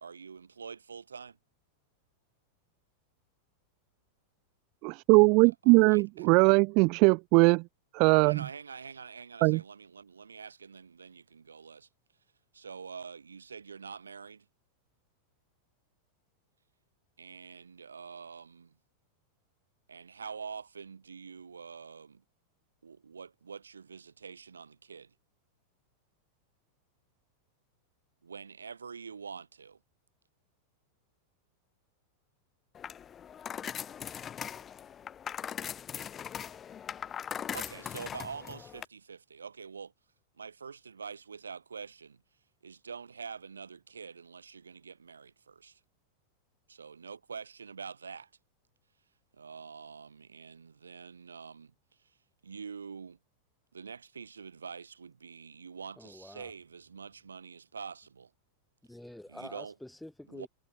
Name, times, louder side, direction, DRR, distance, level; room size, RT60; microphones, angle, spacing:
voice 1, 0.0-1.4 5.4-6.3 8.2-11.9 12.5-14.5 17.2-18.7 19.9-22.2 22.8-25.1 28.2-29.8 37.5-39.9 40.4-42.2 42.6-45.8 46.7-48.3 49.4-51.7 52.4-53.2 53.7-58.3 59.3-59.7 60.3-60.5, right 6 dB, 75° right, 2.4 m, -45 dB
voice 2, 4.8-7.6 7.9-8.4 9.4-9.6, right 30 dB, 45° right, 0.4 m, -21 dB
sound 1, 32.7-38.9, left 8 dB, 25° left, 2.1 m, -40 dB
voice 3, 56.0-56.5 58.8-60.5, left 1 dB, 5° left, 6.8 m, -47 dB
figure-of-eight pair, 90°, 0 cm